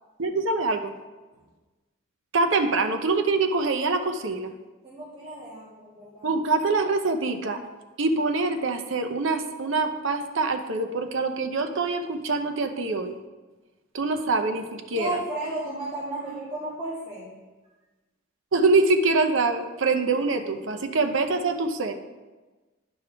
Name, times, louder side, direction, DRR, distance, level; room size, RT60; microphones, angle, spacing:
voice 1, 0.2-0.9 2.3-4.5 6.2-7.6 8.0-13.2 13.9-15.2 18.5-21.9, right 3 dB, 65° right, 6 dB, 0.7 m, -24 dB
voice 2, 4.8-6.3 14.9-17.4, right 1 dB, 25° right, -10 dB, 2.0 m, -33 dB
11.0 x 5.4 x 3.4 m, 1.2 s
head